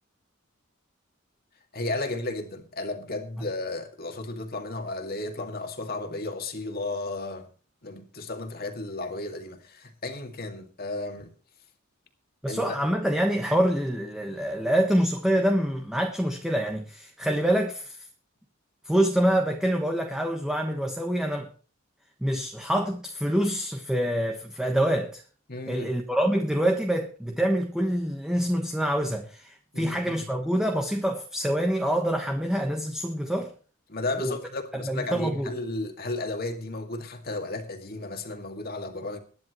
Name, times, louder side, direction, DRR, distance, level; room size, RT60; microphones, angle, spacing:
voice 1, 1.7-7.5 7.8-11.3 12.5-12.8 25.5-25.9 29.7-30.1 33.9-39.2, left 2 dB, 45° left, 2.2 m, -34 dB
voice 2, 12.4-18.0 18.8-21.5 22.2-25.2 25.7-33.5 34.2-34.4 34.8-35.5, equal, 5° right, 1.2 m, -26 dB
21.5 x 10.5 x 3.1 m
head